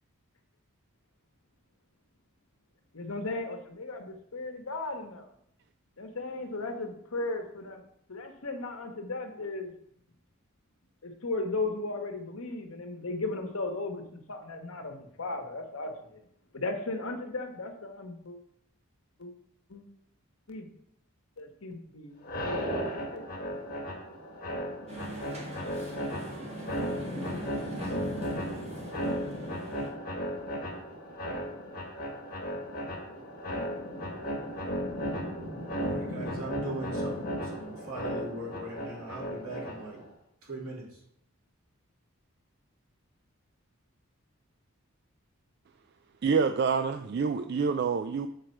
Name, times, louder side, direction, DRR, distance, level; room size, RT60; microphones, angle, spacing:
voice 1, 2.9-5.3 6.0-7.8 8.1-9.7 11.0-16.2 16.5-18.4 19.2-19.3 19.7-19.8 20.5-20.7 21.4-22.6 23.1-23.3, left 2 dB, 75° left, 1.2 m, -36 dB
sound 1, 22.2-40.1, equal, 45° left, 1.5 m, -35 dB
sound 2, 24.9-29.9, right 1 dB, 30° right, 1.4 m, -42 dB
voice 2, 35.8-40.0 40.4-41.0, right 1 dB, 85° right, 3.0 m, -40 dB
voice 3, 46.2-48.3, right 5 dB, 50° right, 0.3 m, -27 dB
7.8 x 4.9 x 4.4 m
head